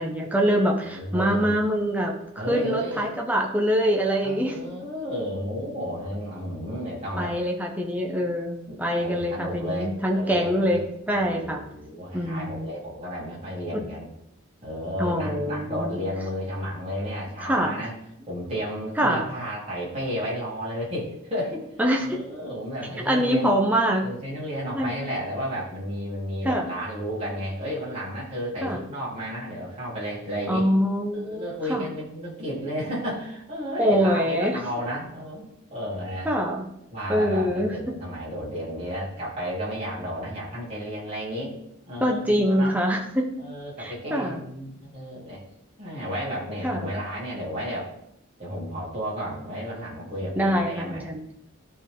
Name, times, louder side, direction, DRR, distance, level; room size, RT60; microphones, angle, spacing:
voice 1, 0.0-2.1 2.5-4.6 7.2-11.6 12.1-12.7 13.7-13.8 15.0-16.0 17.4-17.7 19.0-19.3 21.8-22.1 23.0-24.0 24.7-25.0 26.4-26.7 28.6-28.8 30.5-31.9 33.8-34.6 36.2-36.6 37.1-37.7 42.0-43.3 43.8-44.4 46.6-46.9 50.3-51.2, equal, 10° right, 0 dB, 0.9 m, -24 dB
voice 2, 0.8-1.5 2.4-3.1 4.2-7.3 8.7-10.8 11.1-14.1 14.6-17.9 18.3-21.6 22.0-23.5 24.0-30.7 31.1-36.3 36.9-41.5 41.9-42.8 43.4-45.4 45.8-47.9 48.4-51.1, equal, 30° right, -7 dB, 3.3 m, -32 dB
12.5 x 4.2 x 3.7 m, 0.78 s
head